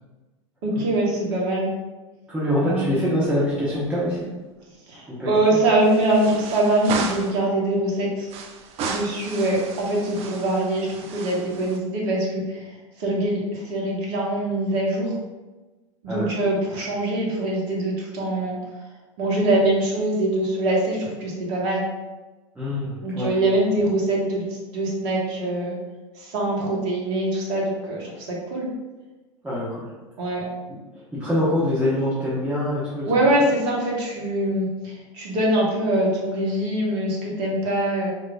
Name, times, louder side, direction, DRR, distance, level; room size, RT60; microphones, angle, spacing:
voice 1, 0.6-1.7 2.6-2.9 4.9-8.3 8.8-12.7 13.0-15.1 16.0-18.6 19.2-21.8 23.0-24.4 24.7-25.7 26.1-28.7 30.2-30.4 33.1-38.1, right 1 dB, 55° right, -3 dB, 1.2 m, -23 dB
voice 2, 2.3-4.3 5.1-5.3 16.1-16.3 22.5-23.3 29.4-29.9 31.1-33.3, left 1 dB, 10° right, -10 dB, 1.1 m, -24 dB
sound 1, 3.2-4.0 4.2-4.3 5.8-7.4 8.3-11.8, right 5 dB, 35° right, 0.4 m, -34 dB
4.6 x 2.9 x 2.4 m, 1.2 s
figure-of-eight pair, 85°, 17 cm